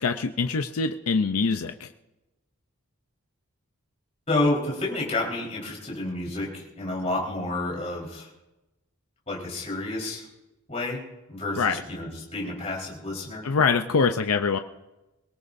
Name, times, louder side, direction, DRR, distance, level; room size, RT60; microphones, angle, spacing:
voice 1, 0.0-1.9 11.6-11.8 13.4-14.6, left 5 dB, 85° left, 7 dB, 0.6 m, -24 dB
voice 2, 4.3-8.3 9.3-10.3 10.7-11.0 11.3-13.4, left 2 dB, 30° left, -4 dB, 4.2 m, -29 dB
24.0 x 17.5 x 2.7 m, 1.0 s
head